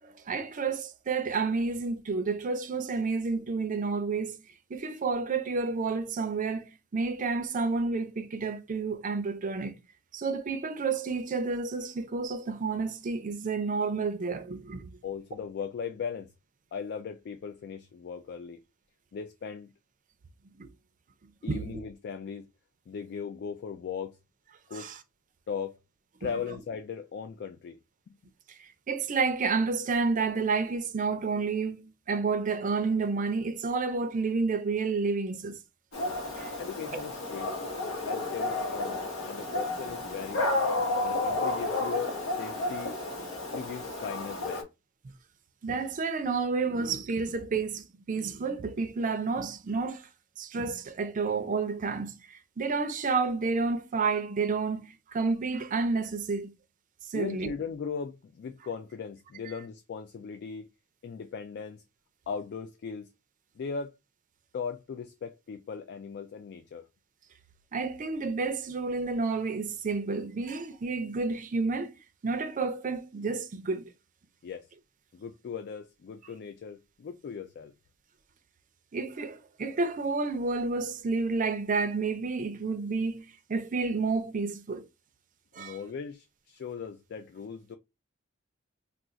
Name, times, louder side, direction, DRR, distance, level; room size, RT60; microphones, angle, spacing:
voice 1, 0.0-4.4 4.7-9.7 10.1-14.9 20.6-20.7 21.5-21.8 24.7-25.0 28.5-35.6 36.3-36.6 36.9-37.0 45.6-50.0 50.4-56.5 57.1-57.5 67.7-71.9 72.2-73.9 78.9-84.9 85.5-85.8, right 4 dB, 40° right, 0.5 m, -30 dB
voice 2, 15.0-16.3 16.7-18.6 19.1-19.7 21.4-22.5 22.9-24.2 24.7-24.9 25.5-25.8 26.2-27.8 28.1-28.2 36.6-37.5 38.0-40.6 41.0-43.0 43.5-44.7 57.1-60.7 61.0-61.8 62.3-63.1 63.6-64.0 64.5-66.9 74.4-74.7 75.1-77.7 85.6-87.8, left 6 dB, 55° left, 0.3 m, -38 dB
Dog, 35.9-44.6, left 2 dB, 80° left, 1.1 m, -32 dB
2.4 x 2.4 x 3.8 m
head